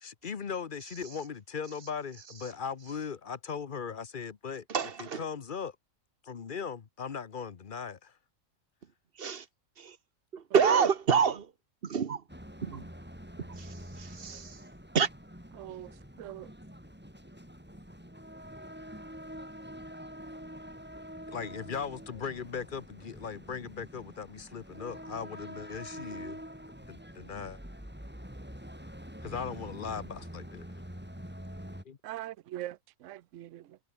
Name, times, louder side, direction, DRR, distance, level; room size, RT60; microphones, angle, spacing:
voice 1, 0.0-4.6 5.2-5.8 6.2-8.1 21.3-26.4 26.9-27.6 29.2-30.7 31.8-32.0, left 6 dB, 40° left, 1.0 m, -38 dB
voice 2, 4.7-5.2 9.2-9.5 9.8-10.0 10.3-11.5 11.8-12.2 12.6-12.9 13.4-14.6 14.9-15.1, right 6 dB, 45° right, 1.2 m, -28 dB
sound 1, 12.3-31.8, equal, 5° right, 6.3 m, -46 dB
voice 3, 15.5-16.5 32.0-33.8, right 14 dB, 70° right, 0.9 m, -42 dB
omnidirectional pair, 1.5 m